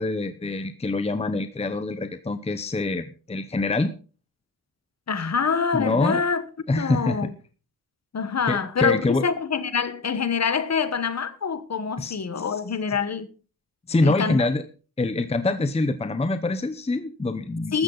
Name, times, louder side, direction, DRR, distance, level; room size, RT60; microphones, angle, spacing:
voice 1, 0.0-3.9 5.7-6.2 6.7-7.3 8.5-9.3 12.0-12.2 13.9-14.6 15.0-17.8, left 2 dB, 15° left, 0.8 m, -25 dB
voice 2, 5.1-6.4 6.7-7.3 8.1-13.3 14.0-14.4 17.7-17.8, left 6 dB, 45° left, 1.3 m, -25 dB
14.5 x 13.0 x 4.0 m
wide cardioid pair, 175°, 38 cm